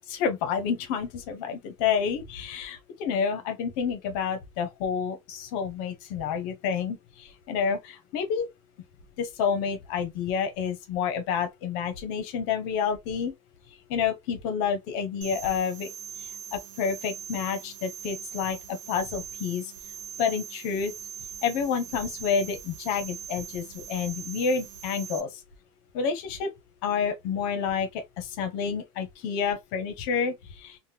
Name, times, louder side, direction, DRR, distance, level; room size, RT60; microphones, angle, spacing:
voice 1, 0.1-8.5 9.2-13.3 13.9-15.9 16.2-19.7 20.2-20.9 21.4-25.4 25.9-26.5 26.8-30.8, left 6 dB, 40° left, 0.7 m, -29 dB
sound 1, 15.2-25.2, right 8 dB, 65° right, 0.6 m, -41 dB
3.4 x 2.1 x 2.7 m
supercardioid pair, 180°, 17 cm